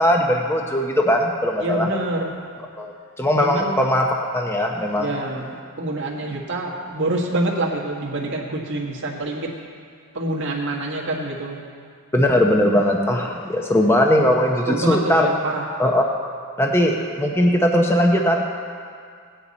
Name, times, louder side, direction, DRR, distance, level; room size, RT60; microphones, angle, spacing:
voice 1, 0.0-1.9 2.8-2.9 3.2-4.1 4.3-5.1 12.1-15.3 15.8-16.0 16.6-18.4, left 1 dB, 10° left, 1 dB, 0.7 m, -19 dB
voice 2, 1.6-2.3 3.4-3.8 5.0-5.4 5.8-9.5 10.1-11.6 14.7-15.6, right 2 dB, 60° right, -1 dB, 1.8 m, -26 dB
17.0 x 9.7 x 4.2 m, 2.2 s
head